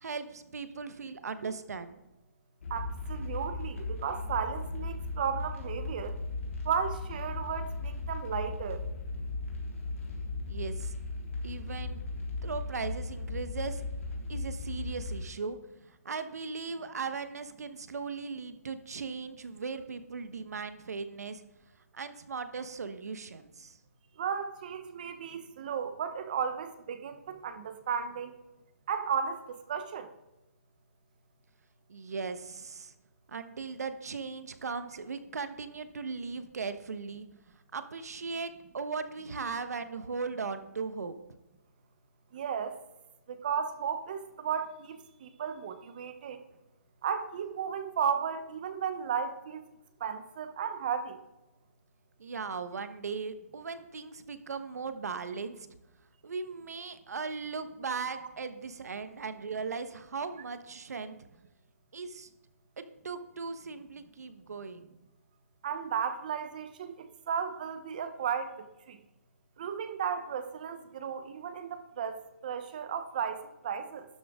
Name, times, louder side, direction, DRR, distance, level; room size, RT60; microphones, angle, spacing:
voice 1, 0.0-2.0 10.5-10.9 11.4-12.0 12.4-13.8 14.3-15.6 16.0-21.4 21.9-23.8 31.9-32.9 33.3-37.3 37.7-41.1 52.2-55.7 56.2-61.2 61.9-62.3 62.8-64.9, right 5 dB, 80° right, 10 dB, 1.1 m, -38 dB
sound 1, 2.6-15.2, left 3 dB, 60° left, 3.5 m, -37 dB
voice 2, 2.7-6.2 6.6-8.8 24.2-28.3 28.9-29.4 29.7-30.1 42.3-42.8 43.3-46.4 47.0-49.6 50.0-51.2 58.2-58.3 65.6-68.5 68.9-69.0 69.6-74.1, right 7 dB, 30° right, 10 dB, 0.8 m, -34 dB
12.0 x 8.8 x 3.6 m, 1.0 s
hypercardioid pair, 175°, 9 cm